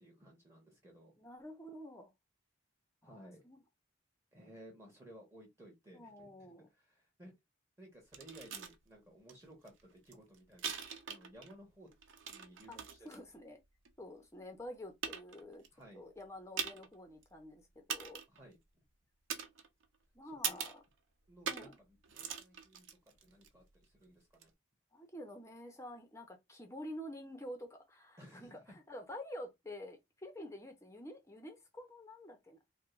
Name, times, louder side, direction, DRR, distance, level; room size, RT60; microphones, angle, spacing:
voice 1, 0.0-1.1 3.0-3.4 4.3-7.3 7.8-10.7 11.1-11.9 12.3-13.2 15.7-16.1 18.3-18.6 20.2-20.6 21.3-24.5 28.2-28.8, right 1 dB, 15° right, 1.2 m, -57 dB
voice 2, 1.2-2.1 3.0-3.6 5.9-6.7 12.7-12.8 13.0-13.6 14.0-15.6 15.9-18.2 20.1-20.7 21.5-21.8 24.9-32.6, left 1 dB, 15° left, 0.6 m, -49 dB
sound 1, 8.1-8.8 9.3-9.4 9.7-11.5 11.9-13.2 13.8-13.9 14.6-14.7 15.0-15.7 16.6-17.0 17.2-17.3 17.9-18.4 19.3-20.0 20.4-20.8 21.5-21.8 22.0-23.5 24.3-24.4, right 7 dB, 90° right, 0.7 m, -41 dB
4.8 x 2.1 x 2.4 m
head